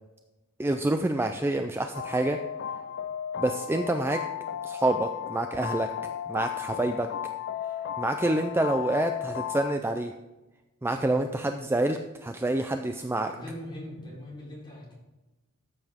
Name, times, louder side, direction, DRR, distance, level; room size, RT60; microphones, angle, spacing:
voice 1, 0.6-2.4 3.4-4.2 4.6-5.9 6.3-7.1 8.0-10.1 10.8-13.3, right 2 dB, 10° right, 6 dB, 0.4 m, -27 dB
sound 1, 1.9-9.8, left 10 dB, 55° left, 0.4 m, -35 dB
voice 2, 13.3-14.9, left 1 dB, 20° left, -6 dB, 4.0 m, -41 dB
13.5 x 7.7 x 3.6 m, 1.1 s
head